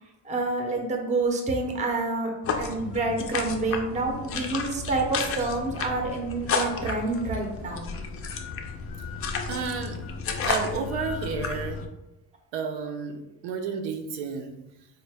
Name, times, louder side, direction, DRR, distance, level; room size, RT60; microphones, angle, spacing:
voice 1, 0.2-7.9, right 3 dB, 20° right, 2 dB, 0.6 m, -28 dB
sound 1, 2.4-11.9, left 5 dB, 35° left, 0.4 m, -32 dB
voice 2, 9.5-10.0 10.4-11.8 12.5-14.5, right 5 dB, 90° right, 5 dB, 0.6 m, -31 dB
4.3 x 2.1 x 3.3 m, 0.94 s
cardioid pair, 135°, 41 cm